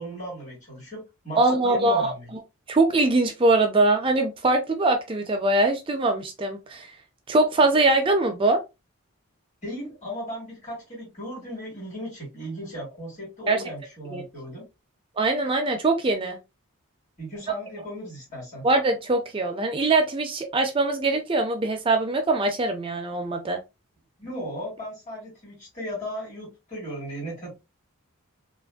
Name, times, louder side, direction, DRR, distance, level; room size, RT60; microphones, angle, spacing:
voice 1, 0.0-2.2 9.6-14.6 17.2-18.6 24.2-27.5, equal, 30° left, 1.4 m, -36 dB
voice 2, 1.4-2.1 2.7-6.9 7.3-8.6 13.5-13.6 14.1-14.2 15.2-16.4 18.6-23.6, right 2 dB, 25° right, 0.4 m, -22 dB
3.3 x 2.4 x 2.2 m
head